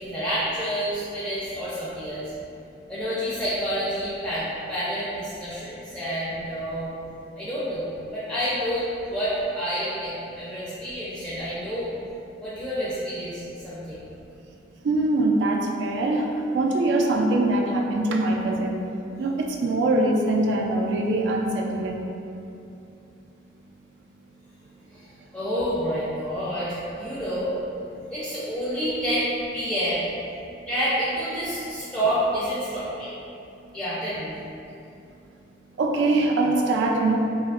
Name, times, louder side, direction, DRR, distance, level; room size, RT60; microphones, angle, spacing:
voice 1, 0.0-2.3 2.9-6.9 7.4-11.9 12.4-14.0 24.9-25.0 25.3-27.6 28.1-30.1 30.7-33.1 33.7-34.3, equal, 5° left, -11 dB, 0.4 m, -28 dB
voice 2, 14.8-18.8 19.2-22.1 35.8-37.2, right 2 dB, 75° right, 1 dB, 0.3 m, -23 dB
2.8 x 2.4 x 2.3 m, 2.6 s
head